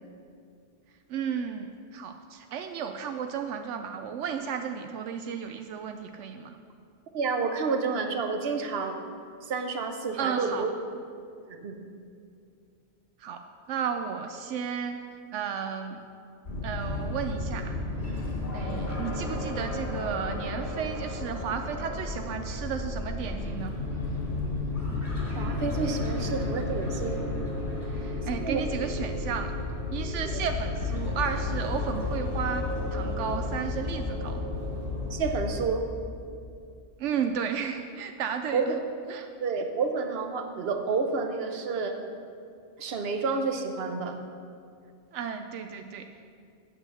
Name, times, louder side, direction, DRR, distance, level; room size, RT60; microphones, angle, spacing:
voice 1, 1.1-6.6 10.2-10.7 13.2-13.4 13.7-15.0 15.3-16.0 16.6-17.8 18.5-23.8 26.1-26.2 27.9-29.5 29.9-34.4 37.0-38.8 39.1-39.3 45.1-46.1, right 7 dB, 85° right, 6 dB, 0.9 m, -33 dB
voice 2, 7.1-9.0 9.4-10.7 11.5-11.8 25.3-27.2 28.4-28.6 30.2-30.4 35.1-35.8 38.5-38.8 39.4-42.0 42.8-44.2, right 4 dB, 60° right, 5 dB, 1.1 m, -29 dB
sound 1, 16.4-35.6, left 2 dB, 60° left, 3.2 m, -32 dB
8.8 x 7.8 x 6.7 m, 2.3 s
omnidirectional pair, 1.2 m